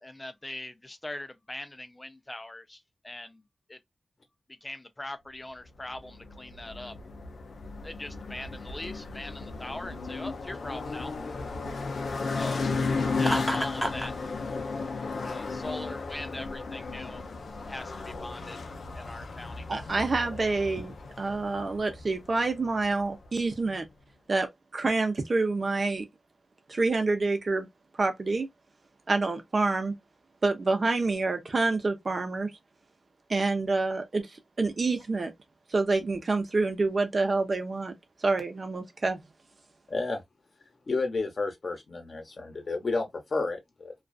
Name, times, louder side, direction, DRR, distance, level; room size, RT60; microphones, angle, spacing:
voice 1, 0.0-2.8 3.0-3.4 3.7-3.8 4.6-6.9 7.8-11.1 12.3-12.6 13.1-14.1 15.2-17.2 17.6-18.6 18.9-19.7, left 1 dB, 25° left, 0.5 m, -41 dB
sound 1, 5.9-23.4, left 4 dB, 80° left, 0.5 m, -35 dB
Laughter, 13.2-14.1, right 1 dB, 10° right, 0.8 m, -30 dB
voice 2, 19.7-23.8 24.3-26.0 26.7-27.7 28.0-28.5 29.1-30.0 30.4-32.5 33.3-34.3 34.6-35.3 35.7-37.9 38.2-39.2, right 3 dB, 55° right, 0.7 m, -27 dB
voice 3, 39.9-40.2 40.9-43.9, left 3 dB, 60° left, 0.9 m, -31 dB
2.4 x 2.4 x 2.3 m
cardioid pair, 55°, 0 cm